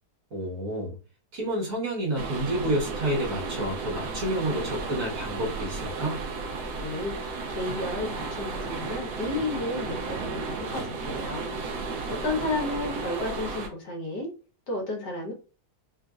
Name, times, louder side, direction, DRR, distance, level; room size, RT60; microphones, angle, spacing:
voice 1, 0.3-1.0 1.3-6.2, right 1 dB, 55° right, -3 dB, 1.6 m, -29 dB
sound 1, 2.2-13.7, right 4 dB, 70° right, 1.2 m, -34 dB
voice 2, 6.8-11.5 12.1-14.3 14.7-15.3, left 2 dB, 80° left, 1 dB, 1.6 m, -32 dB
3.9 x 2.6 x 2.3 m, 0.34 s
omnidirectional pair, 1.8 m